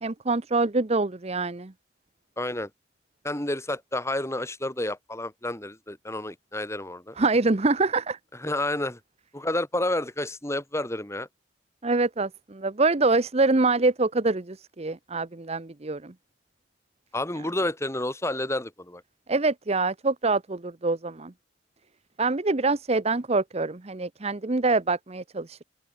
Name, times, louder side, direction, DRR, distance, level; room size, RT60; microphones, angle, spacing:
voice 1, 0.0-1.7 7.2-8.2 11.8-16.1 19.3-21.3 22.2-25.6, right 3 dB, 35° right, 0.9 m, -25 dB
voice 2, 2.4-2.7 3.2-7.1 8.4-9.0 9.3-11.3 17.1-19.0, left 1 dB, 15° left, 4.1 m, -30 dB
open air
head